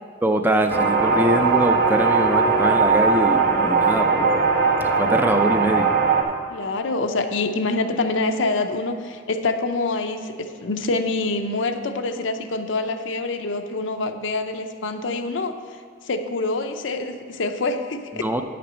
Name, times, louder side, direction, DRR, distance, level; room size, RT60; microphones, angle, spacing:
voice 1, 0.2-6.0 18.2-18.4, right 1 dB, 10° right, 6 dB, 0.4 m, -23 dB
sound 1, 0.7-6.2, right 4 dB, 55° right, 1.0 m, -19 dB
voice 2, 6.5-15.5 16.0-18.3, left 3 dB, 75° left, 7 dB, 0.6 m, -26 dB
9.5 x 5.9 x 6.2 m, 2.2 s
head